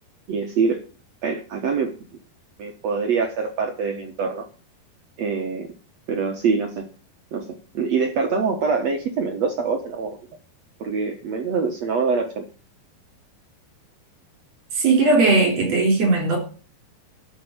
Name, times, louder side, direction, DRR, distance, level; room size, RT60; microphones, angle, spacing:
voice 1, 0.3-0.8 1.2-1.9 2.6-4.5 5.2-5.7 6.1-6.9 7.3-10.2 10.8-12.4, right 5 dB, 65° right, 1.6 m, -24 dB
voice 2, 14.7-16.4, right 3 dB, 40° right, 4.3 m, -18 dB
12.5 x 7.4 x 8.8 m
omnidirectional pair, 5.1 m